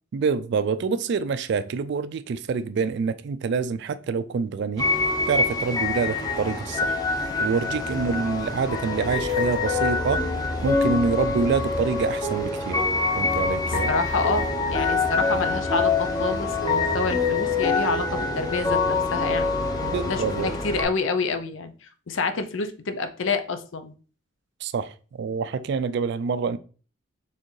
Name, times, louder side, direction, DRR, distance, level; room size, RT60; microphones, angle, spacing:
voice 1, 0.1-4.9 5.3-7.0 7.4-10.3 10.6-12.8 13.2-13.9 19.8-20.5 24.6-26.6, right 5 dB, 60° right, 0.3 m, -26 dB
sound 1, 4.8-20.8, left 3 dB, 20° left, 0.8 m, -25 dB
voice 2, 13.7-19.5 20.0-23.9, left 4 dB, 80° left, 0.6 m, -28 dB
4.5 x 3.4 x 3.2 m
head